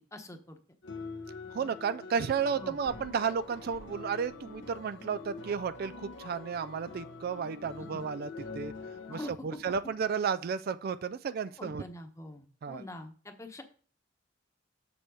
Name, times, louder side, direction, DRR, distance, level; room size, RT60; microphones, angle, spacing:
voice 1, 0.1-0.6 2.5-2.8 7.9-8.0 9.1-9.3 11.6-13.6, left 1 dB, 15° left, 6 dB, 1.0 m, -44 dB
sound 1, 0.8-9.2, left 3 dB, 75° left, 1.0 m, -45 dB
voice 2, 1.5-8.7 9.1-11.8 12.6-12.8, right 6 dB, 55° right, 13 dB, 0.3 m, -33 dB
sound 2, 2.9-10.9, left 2 dB, 55° left, 1.2 m, -58 dB
7.0 x 4.5 x 6.2 m, 0.43 s
head